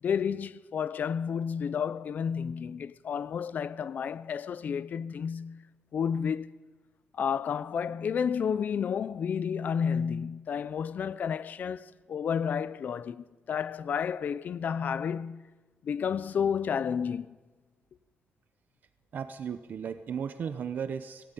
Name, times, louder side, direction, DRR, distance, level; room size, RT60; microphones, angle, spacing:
voice 1, 0.0-5.6 5.9-6.5 7.1-15.4 15.8-17.4, left 7 dB, 50° left, 0.5 m, -31 dB
voice 2, 19.1-21.3, right 7 dB, 55° right, 0.8 m, -35 dB
19.5 x 17.0 x 9.1 m
wide cardioid pair, 165°, 4 cm